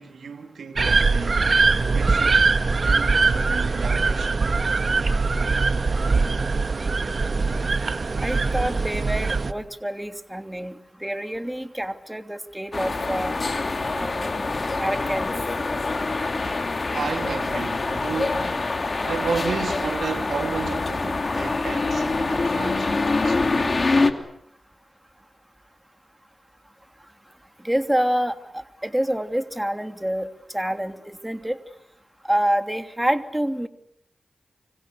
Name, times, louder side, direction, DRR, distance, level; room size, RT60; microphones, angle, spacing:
voice 1, 0.0-1.4 1.8-2.5 2.8-4.4 16.9-18.6 19.0-23.8, right 5 dB, 85° right, 3.0 m, -33 dB
sound 1, 0.8-9.5, right 4 dB, 60° right, 1.6 m, -22 dB
voice 2, 8.2-13.4 13.9-14.3 14.8-15.3 27.6-30.3 30.5-31.6 32.2-33.7, equal, 10° right, 2.9 m, -27 dB
sound 2, 12.7-24.1, left 3 dB, 50° left, 2.9 m, -25 dB
30.0 x 25.5 x 6.9 m
cardioid pair, 40°, 0 cm